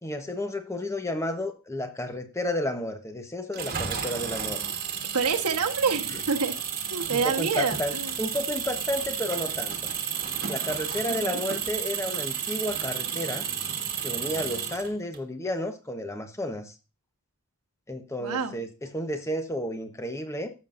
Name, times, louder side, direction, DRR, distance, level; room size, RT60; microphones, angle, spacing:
voice 1, 0.0-4.6 7.1-9.8 10.5-13.5 14.0-16.7 17.9-20.5, left 1 dB, 15° left, 1.1 m, -32 dB
Engine, 3.5-15.2, right 8 dB, 40° right, 1.4 m, -32 dB
voice 2, 5.1-6.6 6.9-8.1 11.2-11.4 18.2-18.6, right 5 dB, 90° right, 1.3 m, -27 dB
15.5 x 7.2 x 2.6 m
head